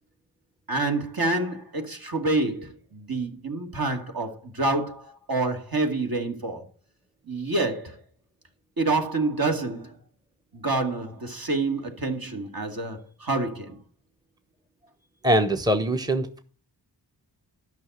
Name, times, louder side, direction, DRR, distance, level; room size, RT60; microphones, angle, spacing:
voice 1, 0.7-6.7 7.3-8.0 8.8-10.0 10.5-13.8, right 2 dB, 50° right, 2.5 m, -27 dB
voice 2, 15.2-16.4, right 1 dB, 10° right, 1.0 m, -22 dB
12.5 x 6.0 x 8.0 m
wide cardioid pair, 85°, 44 cm